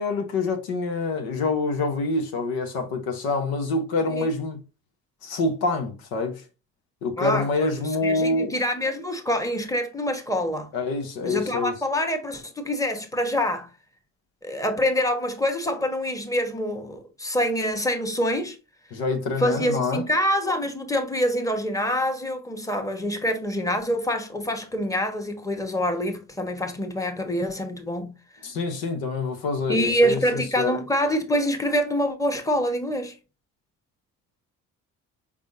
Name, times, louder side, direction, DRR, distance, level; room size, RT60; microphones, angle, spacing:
voice 1, 0.0-4.6 5.2-6.4 7.0-8.5 10.7-11.7 18.9-20.0 28.4-30.7, left 3 dB, 85° left, 1.0 m, -26 dB
voice 2, 7.2-10.7 11.2-13.7 14.4-18.6 19.4-28.2 29.7-33.2, equal, 10° left, 1.2 m, -26 dB
5.1 x 3.5 x 2.6 m
supercardioid pair, 65°, 36 cm